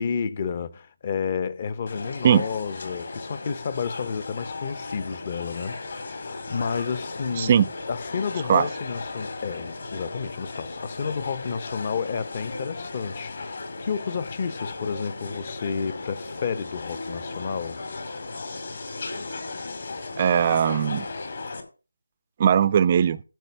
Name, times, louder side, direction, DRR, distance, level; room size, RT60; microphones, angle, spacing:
voice 1, 0.0-7.5 7.9-17.8, left 6 dB, 30° left, 0.7 m, -31 dB
sound 1, 1.9-21.6, left 3 dB, 50° left, 2.4 m, -36 dB
voice 2, 7.4-7.7 8.5-8.7 20.2-21.1 22.4-23.2, right 8 dB, 30° right, 0.4 m, -19 dB
14.0 x 5.8 x 5.5 m
figure-of-eight pair, 160°, 0 cm